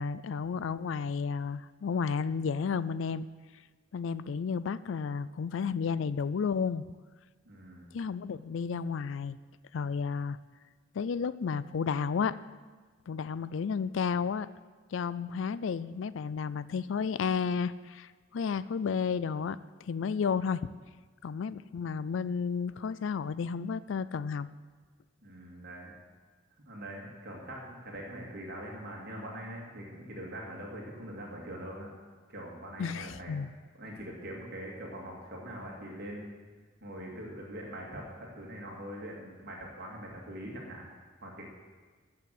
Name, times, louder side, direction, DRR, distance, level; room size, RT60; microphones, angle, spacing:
voice 1, 0.0-3.3 3.9-6.8 7.9-9.4 9.7-10.4 10.9-12.4 13.1-14.5 14.9-20.6 21.2-24.5 32.8-33.5, left 6 dB, 70° left, 17 dB, 0.4 m, -32 dB
voice 2, 7.5-7.9 25.2-25.9 26.6-31.9 32.3-33.3 33.8-36.3 36.8-40.9 41.2-41.5, right 1 dB, 55° right, -1 dB, 2.2 m, -43 dB
13.5 x 5.9 x 7.7 m, 1.4 s
head